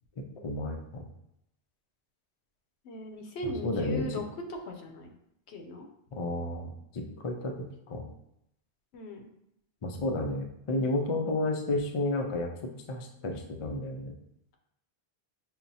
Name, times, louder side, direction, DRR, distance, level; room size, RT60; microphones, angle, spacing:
voice 1, 0.4-1.0 3.4-4.1 6.1-7.6 7.9-8.1 9.8-14.1, left 2 dB, 55° left, 3 dB, 0.3 m, -32 dB
voice 2, 2.8-4.2 4.5-5.1 5.5-5.9 8.9-9.2, equal, 85° left, 3 dB, 0.9 m, -38 dB
5.8 x 2.1 x 2.6 m, 0.80 s
omnidirectional pair, 1.1 m